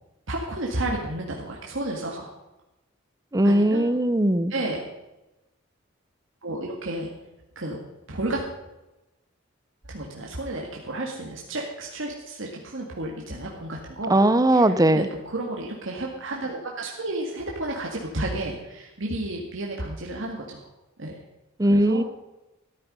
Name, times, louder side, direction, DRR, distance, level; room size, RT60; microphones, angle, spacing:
voice 1, 0.3-2.3 3.4-3.9 4.5-4.8 6.4-7.1 7.6-7.8 8.1-8.4 9.9-14.2 14.5-20.7 21.0-21.2 21.7-22.0, right 1 dB, 65° right, -1 dB, 2.0 m, -32 dB
voice 2, 3.3-4.5 14.1-15.1 21.6-22.0, right 1 dB, 20° right, 13 dB, 0.7 m, -19 dB
14.0 x 12.0 x 5.4 m, 0.98 s
head